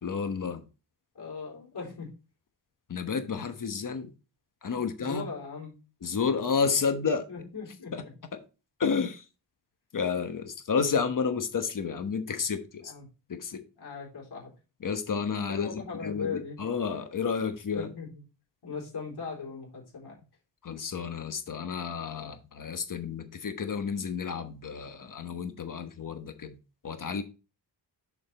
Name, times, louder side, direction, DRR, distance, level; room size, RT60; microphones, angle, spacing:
voice 1, 0.0-0.6 2.9-4.1 4.6-5.3 6.0-7.2 7.9-8.0 8.3-8.4 8.8-9.2 9.9-12.9 13.3-13.6 14.8-15.7 16.0-17.9 20.6-26.6 26.8-27.2, left 5 dB, 45° left, 1.2 m, -31 dB
voice 2, 1.1-2.1 4.7-5.8 7.3-7.9 12.8-13.0 13.8-14.5 15.5-16.6 17.7-18.2 18.6-20.2 22.1-22.3, left 5 dB, 65° left, 4.1 m, -38 dB
6.7 x 5.9 x 4.1 m
wide cardioid pair, 160°, 43 cm